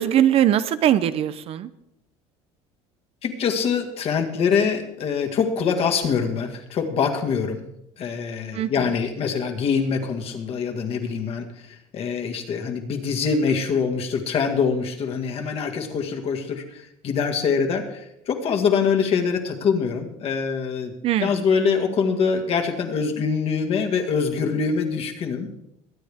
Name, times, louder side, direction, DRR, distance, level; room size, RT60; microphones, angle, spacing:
voice 1, 0.0-1.7 8.5-8.9 21.0-21.4, right 11 dB, 45° right, 14 dB, 0.6 m, -21 dB
voice 2, 3.2-7.6 8.0-20.9 21.2-25.5, left 6 dB, 45° left, 3 dB, 2.0 m, -24 dB
22.5 x 9.1 x 3.6 m, 0.80 s
cardioid pair, 120°, 14 cm